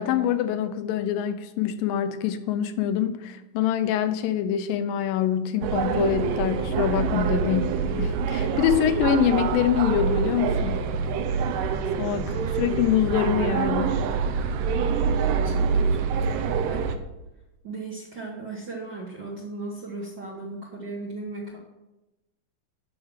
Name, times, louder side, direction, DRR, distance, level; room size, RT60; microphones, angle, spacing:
voice 1, 0.0-10.8 12.0-14.0, left 10 dB, 85° left, 10 dB, 2.4 m, -25 dB
sound 1, 5.6-17.0, right 6 dB, 75° right, 2.3 m, -25 dB
voice 2, 15.2-16.9 17.6-21.6, right 3 dB, 55° right, -2 dB, 1.3 m, -37 dB
11.5 x 4.9 x 7.2 m, 0.99 s
omnidirectional pair, 3.9 m